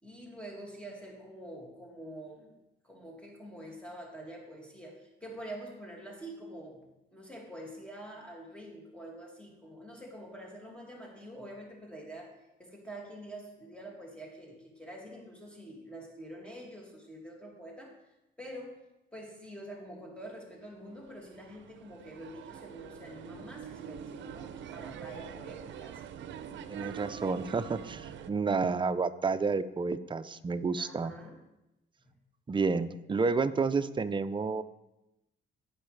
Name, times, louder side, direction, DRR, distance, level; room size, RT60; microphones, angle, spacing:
voice 1, 0.0-2.5 2.8-6.8 7.1-12.3 12.6-18.0 18.4-18.8 19.1-26.4 27.1-27.2 30.8-31.4, right 1 dB, 5° left, -1 dB, 2.1 m, -46 dB
sound 1, 20.6-28.3, right 9 dB, 70° right, 0.6 m, -45 dB
voice 2, 26.7-31.1 32.5-34.6, right 4 dB, 25° right, 11 dB, 0.5 m, -30 dB
15.5 x 5.6 x 3.2 m, 0.93 s
cardioid pair, 90°, 20 cm